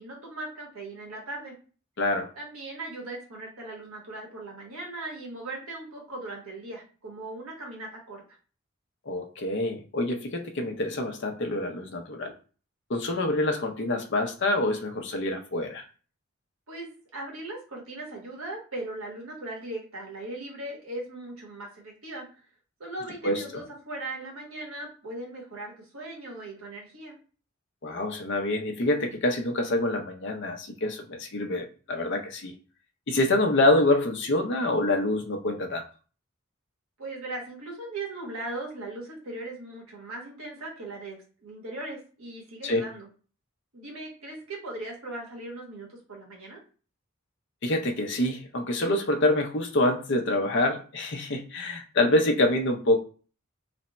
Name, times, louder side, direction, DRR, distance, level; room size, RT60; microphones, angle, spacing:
voice 1, 0.0-1.6 2.4-8.2 16.7-22.3 22.8-27.1 37.0-43.1 43.7-46.6, right 2 dB, 85° right, -1 dB, 1.4 m, -39 dB
voice 2, 2.0-2.3 9.1-12.3 12.9-15.8 23.2-23.6 27.8-32.5 33.1-35.8 42.6-42.9 47.6-53.0, left 1 dB, 55° left, 5 dB, 0.6 m, -26 dB
3.4 x 2.2 x 4.0 m, 0.38 s
head